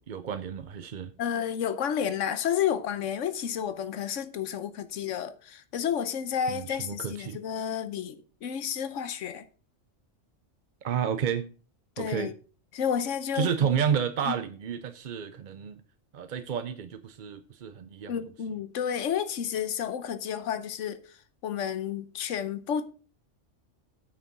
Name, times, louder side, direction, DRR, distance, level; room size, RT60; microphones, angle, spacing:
voice 1, 0.0-1.1 6.5-7.4 10.8-11.5 12.0-12.3 13.3-15.8 16.1-18.1, right 8 dB, 50° right, 0.6 m, -31 dB
voice 2, 1.2-9.4 12.0-12.3 12.7-13.5 14.3-14.4 18.1-21.2 21.4-22.9, left 8 dB, 80° left, 1.2 m, -31 dB
9.1 x 6.5 x 5.9 m
omnidirectional pair, 1.3 m